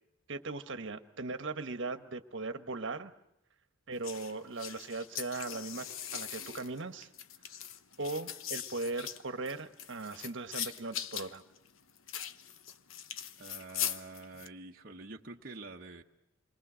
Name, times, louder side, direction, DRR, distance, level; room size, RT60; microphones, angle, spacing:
voice 1, 0.3-3.1 3.9-5.9 6.1-7.1 8.0-11.4, right 3 dB, 65° right, 9 dB, 1.4 m, -38 dB
sound 1, 4.0-14.5, left 9 dB, 80° left, 1.0 m, -41 dB
voice 2, 13.4-16.0, right 3 dB, 50° right, -1 dB, 1.2 m, -47 dB
28.0 x 23.0 x 6.4 m, 0.84 s
head